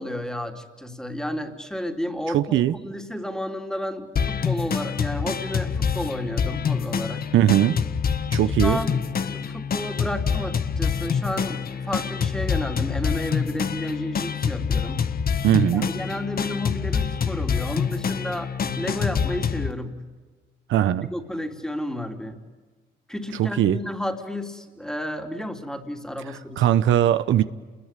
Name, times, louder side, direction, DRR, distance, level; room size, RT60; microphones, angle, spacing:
voice 1, 0.0-7.3 8.6-15.1 15.7-20.0 21.1-22.4 23.1-26.8, left 1 dB, 5° left, 5 dB, 3.2 m, -32 dB
voice 2, 2.3-2.7 7.3-7.7 8.3-8.8 15.4-15.9 20.7-21.1 23.4-23.8 26.6-27.4, right 11 dB, 80° right, 12 dB, 1.0 m, -19 dB
sound 1, 4.2-19.7, left 6 dB, 50° left, 1.3 m, -26 dB
29.5 x 22.0 x 9.1 m, 1.4 s
cardioid pair, 90°, 20 cm